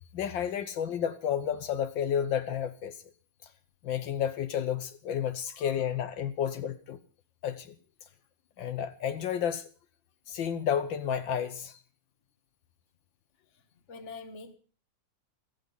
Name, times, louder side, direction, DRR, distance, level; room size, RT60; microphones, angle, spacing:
voice 1, 0.1-3.0 3.8-7.0 7.4-7.7 8.6-9.6 10.3-11.8, left 9 dB, 75° left, 1.7 m, -31 dB
voice 2, 13.9-14.6, left 4 dB, 40° left, 1.7 m, -44 dB
14.5 x 14.5 x 5.6 m
omnidirectional pair, 2.1 m